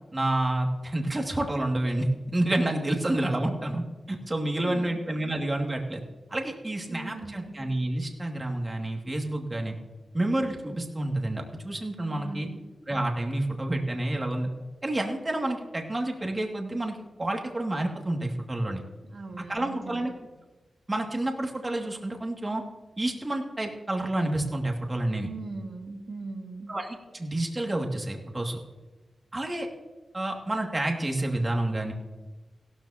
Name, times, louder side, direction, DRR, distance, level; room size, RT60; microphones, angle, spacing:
voice 1, 0.1-3.8 4.1-6.0 6.3-9.7 10.1-12.5 12.9-14.5 14.8-18.8 19.4-20.1 20.9-22.6 23.0-25.3 26.7-28.6 29.3-29.7 30.1-31.9, right 1 dB, 30° right, 2 dB, 2.3 m, -29 dB
voice 2, 4.6-5.3 6.9-7.6 12.0-12.6 19.1-20.1 25.2-26.7, right 3 dB, 60° right, 2 dB, 1.7 m, -40 dB
16.0 x 13.0 x 2.9 m, 1.2 s
cardioid pair, 60°, 0 cm